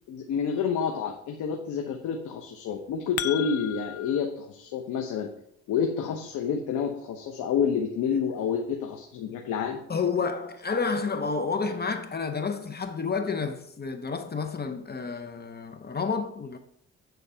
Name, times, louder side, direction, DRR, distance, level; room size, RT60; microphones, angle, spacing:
voice 1, 0.1-5.3 5.7-9.8, left 6 dB, 85° left, 1.0 m, -29 dB
sound 1, 2.7-4.2, left 12 dB, 55° left, 0.5 m, -35 dB
voice 2, 9.9-16.6, left 5 dB, 35° left, 0.8 m, -30 dB
9.3 x 4.0 x 5.7 m
cardioid pair, 90°, 30 cm